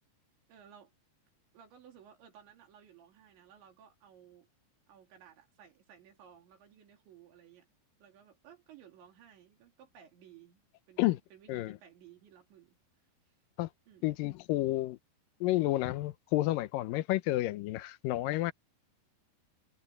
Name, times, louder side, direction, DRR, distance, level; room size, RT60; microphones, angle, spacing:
voice 1, 0.5-0.9 1.5-4.5 4.9-7.7 8.0-12.8 13.3-13.4 13.9-14.1, right 9 dB, 85° right, 5.8 m, -57 dB
voice 2, 14.0-15.0 15.4-18.5, left 16 dB, 85° left, 1.9 m, -30 dB
omnidirectional pair, 5.0 m